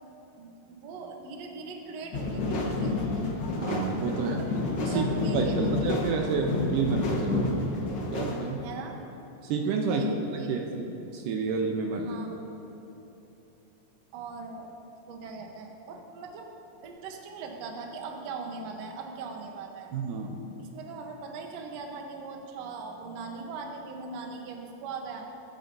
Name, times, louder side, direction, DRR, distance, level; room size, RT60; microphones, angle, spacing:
voice 1, 0.4-3.3 4.1-4.5 4.9-6.6 8.6-9.0 9.8-10.5 11.9-12.4 14.1-16.5 16.8-19.9 20.6-25.3, right 4 dB, 65° right, 2 dB, 1.9 m, -40 dB
sound 1, 2.1-8.5, left 2 dB, 60° left, 1.1 m, -29 dB
voice 2, 3.6-4.4 4.8-7.6 8.1-8.6 9.4-10.0 10.5-12.1 19.9-20.5, right 5 dB, 80° right, 2 dB, 2.3 m, -30 dB
23.5 x 9.0 x 2.7 m, 3.0 s
omnidirectional pair, 4.0 m